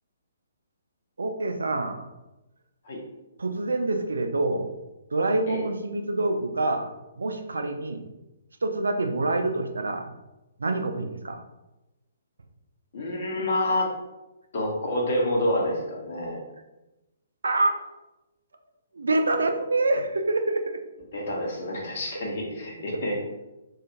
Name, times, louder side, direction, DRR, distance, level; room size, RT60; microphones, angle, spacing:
voice 1, 1.2-2.0 3.4-4.7 5.1-6.9 7.2-8.0 8.6-10.1 10.6-11.4 17.4-17.8 18.9-20.8, right 2 dB, 70° right, 6 dB, 0.3 m, -26 dB
voice 2, 12.9-13.9 14.5-16.4 21.1-23.1, left 1 dB, 50° left, -1 dB, 0.8 m, -28 dB
2.4 x 2.3 x 2.8 m, 1.0 s
figure-of-eight pair, 130°, 0 cm